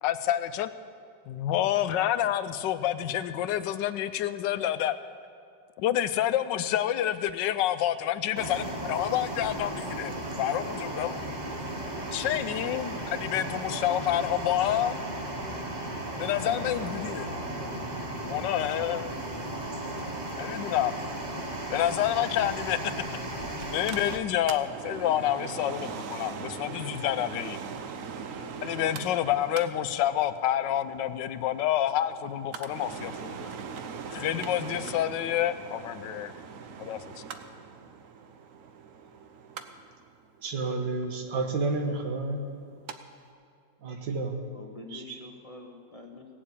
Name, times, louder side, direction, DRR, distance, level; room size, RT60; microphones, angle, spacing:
voice 1, 0.0-0.7 1.3-5.0 5.8-11.2 12.1-15.0 16.2-17.3 18.2-19.1 20.4-21.0 21.7-22.9 23.7-27.6 28.6-33.5 34.1-36.3 36.8-37.0, left 12 dB, 85° left, 13 dB, 1.3 m, -28 dB
sound 1, 8.4-24.2, right 1 dB, 30° right, 1.1 m, -35 dB
voice 2, 16.2-17.5 44.5-46.3, left 2 dB, 25° left, 2 dB, 0.9 m, -44 dB
Mechanical fan, 23.6-43.0 43.3-43.4, right 6 dB, 60° right, 1.0 m, -41 dB
voice 3, 40.4-42.5 43.8-44.4 44.9-45.2, right 3 dB, 80° right, 5 dB, 1.9 m, -30 dB
17.0 x 7.4 x 8.6 m, 2.4 s
omnidirectional pair, 1.9 m